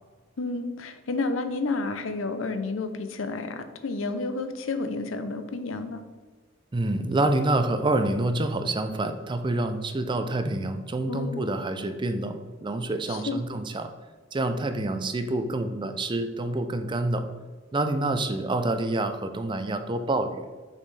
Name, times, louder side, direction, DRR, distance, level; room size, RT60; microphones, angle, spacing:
voice 1, 0.4-6.0 11.1-11.4 13.1-13.4, left 3 dB, 85° left, 9 dB, 0.6 m, -30 dB
voice 2, 6.7-13.9 14.3-17.3 17.7-20.5, right 2 dB, 25° right, 8 dB, 0.4 m, -27 dB
6.6 x 5.4 x 3.3 m, 1.4 s
head